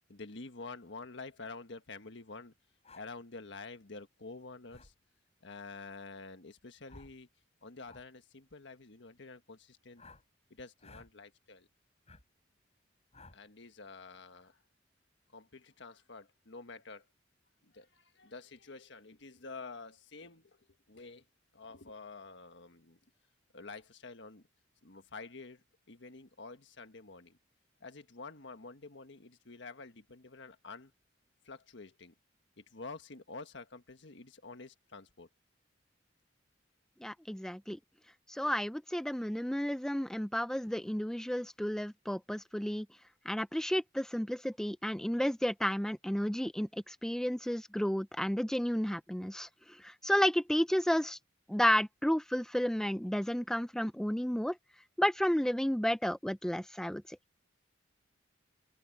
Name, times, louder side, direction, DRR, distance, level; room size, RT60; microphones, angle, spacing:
voice 1, 0.1-2.5 2.9-4.9 5.4-7.3 7.6-10.0 10.5-11.7 13.3-14.6 15.3-17.1 17.6-20.6 20.9-21.2 21.5-23.0 23.5-24.5 24.8-27.4 27.8-30.9 31.4-32.1 32.6-35.3, left 3 dB, 70° left, 1.5 m, -48 dB
sound 1, 2.8-3.1 4.7-4.9 6.9-7.2 7.8-8.1 10.0-10.2 10.8-11.1 12.1-12.2 13.1-13.4, left 3 dB, 35° left, 5.5 m, -55 dB
voice 2, 37.0-37.8 38.3-42.9 43.3-51.2 51.5-54.6 55.0-57.2, equal, 5° left, 0.5 m, -32 dB
open air
head